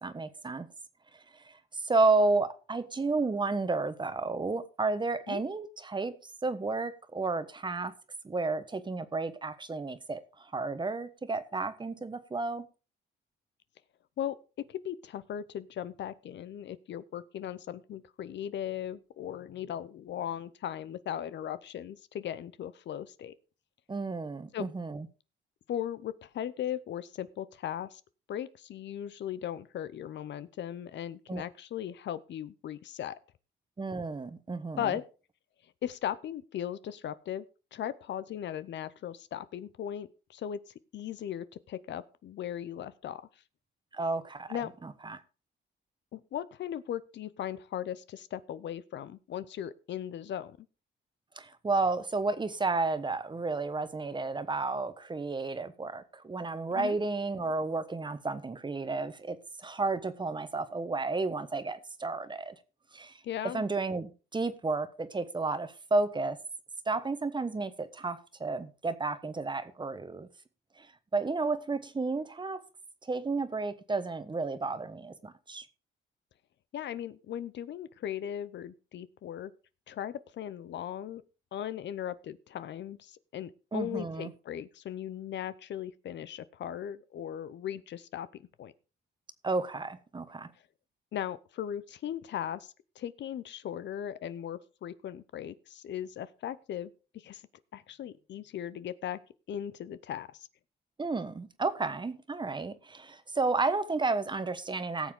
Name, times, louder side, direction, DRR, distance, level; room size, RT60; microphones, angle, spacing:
voice 1, 0.0-0.7 1.3-6.2 6.4-7.9 8.2-12.6 23.9-25.1 31.3-31.4 33.8-34.9 43.9-44.5 44.8-45.2 51.4-62.5 62.9-63.2 63.5-66.4 66.9-70.3 70.8-70.9 71.1-72.6 73.0-75.6 83.7-84.3 89.4-90.5 101.0-105.1, right 3 dB, 25° right, 1.2 m, -32 dB
voice 2, 14.2-23.3 24.5-24.7 25.7-28.0 28.3-33.2 34.8-35.0 35.8-37.4 37.7-43.3 44.5-44.7 46.1-50.6 56.7-57.0 63.2-63.6 76.7-79.5 79.9-81.2 81.5-88.7 91.1-97.4 97.7-99.2 99.5-100.5, left 10 dB, 65° left, 0.7 m, -38 dB
17.5 x 7.1 x 3.8 m
cardioid pair, 90°, 20 cm